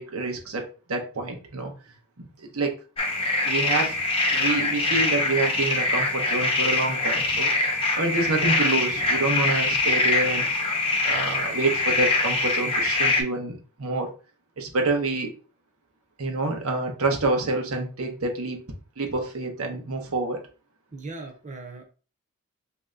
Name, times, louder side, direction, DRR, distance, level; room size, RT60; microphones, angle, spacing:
voice 1, 0.0-1.7 2.2-2.7 3.4-4.0 4.3-7.5 7.9-10.4 11.0-14.1 14.6-15.3 16.2-18.6 19.0-20.4, right 3 dB, 90° right, 3 dB, 0.9 m, -27 dB
sound 1, 3.0-13.2, left 2 dB, 25° left, 0.7 m, -24 dB
voice 2, 20.9-21.8, right 3 dB, 35° right, 2 dB, 0.8 m, -38 dB
3.2 x 2.8 x 3.7 m, 0.35 s
head